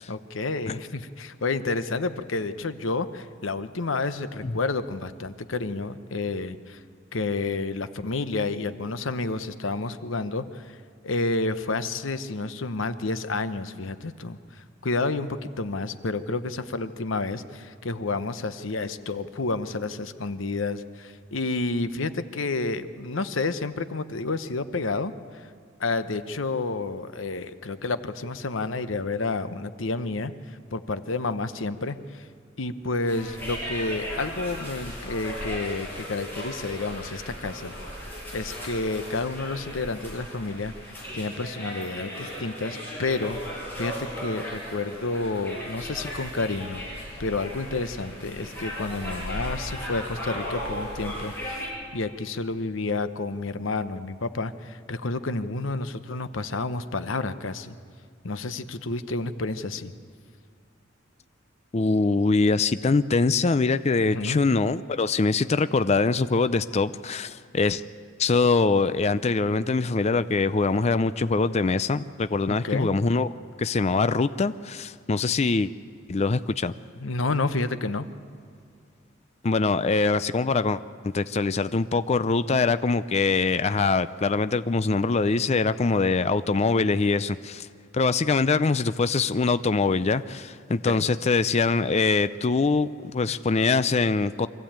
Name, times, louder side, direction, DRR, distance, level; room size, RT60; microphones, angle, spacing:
voice 1, 0.1-6.8 7.1-10.8 11.0-14.4 14.8-25.4 25.8-32.3 32.6-37.7 38.3-43.4 43.8-51.6 51.9-57.7 58.2-59.9 64.0-64.4 72.5-72.9 77.0-78.1 90.9-91.0, left 3 dB, 85° left, 12 dB, 0.9 m, -30 dB
sound 1, 33.1-51.7, equal, 10° left, 6.9 m, -36 dB
voice 2, 61.7-67.8 68.2-73.3 73.6-75.7 76.1-76.7 79.4-87.7 87.9-94.5, left 4 dB, 35° left, 13 dB, 0.5 m, -23 dB
24.0 x 15.0 x 8.8 m, 2.2 s
head